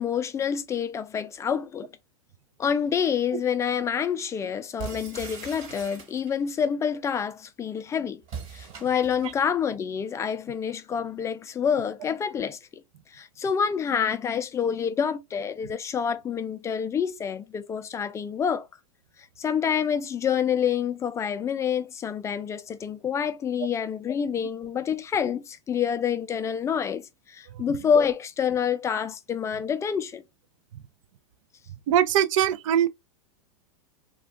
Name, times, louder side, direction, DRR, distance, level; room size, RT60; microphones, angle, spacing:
voice 1, 0.0-1.9 2.6-8.2 8.5-12.6 13.1-18.7 19.4-30.2, left 7 dB, 15° left, 0.3 m, -27 dB
sound 1, 4.8-6.5 8.2-9.4, right 6 dB, 40° right, 1.3 m, -40 dB
voice 2, 31.9-32.9, right 10 dB, 65° right, 0.4 m, -22 dB
2.3 x 2.3 x 3.4 m
hypercardioid pair, 115°, 17 cm